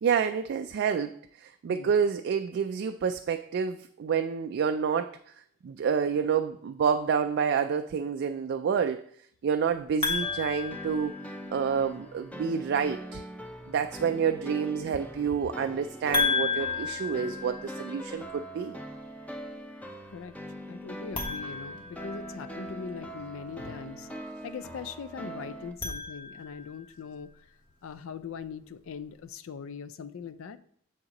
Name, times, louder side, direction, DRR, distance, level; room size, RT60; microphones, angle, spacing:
voice 1, 0.0-9.0 9.4-11.1 11.5-13.2 13.7-18.8, right 6 dB, 55° right, 7 dB, 0.3 m, -28 dB
sound 1, 10.0-11.7 16.1-18.2 21.0-22.7 25.6-26.8, left 5 dB, 25° left, 1.1 m, -32 dB
sound 2, 10.2-25.7, equal, 5° left, 0.5 m, -42 dB
voice 2, 20.7-24.1 24.4-27.3 27.8-30.6, left 6 dB, 75° left, 14 dB, 0.4 m, -41 dB
7.2 x 6.5 x 2.9 m, 0.64 s
head